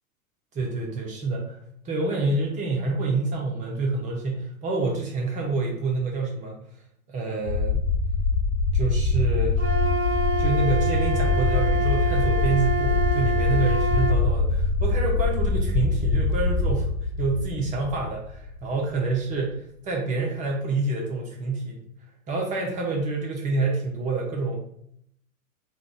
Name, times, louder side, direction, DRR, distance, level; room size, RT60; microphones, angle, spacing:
voice 1, 0.5-1.6 1.8-6.6 7.1-7.8 8.7-9.6 10.4-16.9 17.2-21.8 22.3-24.6, right 3 dB, 20° right, 0 dB, 0.5 m, -27 dB
sound 1, 7.5-19.0, left 3 dB, 45° left, 0.7 m, -24 dB
Wind instrument woodwind instrument, 9.6-14.2, right 2 dB, 65° right, 0.7 m, -28 dB
3.5 x 2.2 x 3.8 m, 0.69 s
figure-of-eight pair, 100°, 43 cm